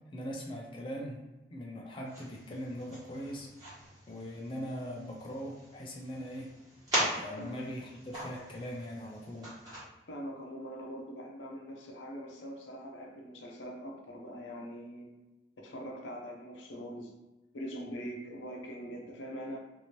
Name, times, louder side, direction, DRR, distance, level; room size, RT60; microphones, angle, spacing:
voice 1, 0.1-1.2 1.5-3.5 4.1-6.5 7.0-9.5, equal, 25° left, -1 dB, 0.3 m, -41 dB
sound 1, 2.0-9.8, equal, 20° right, 1.3 m, -40 dB
voice 2, 10.1-15.1 15.6-17.1 17.5-19.6, equal, 85° left, 0 dB, 0.6 m, -42 dB
2.9 x 2.6 x 2.9 m, 1.1 s
head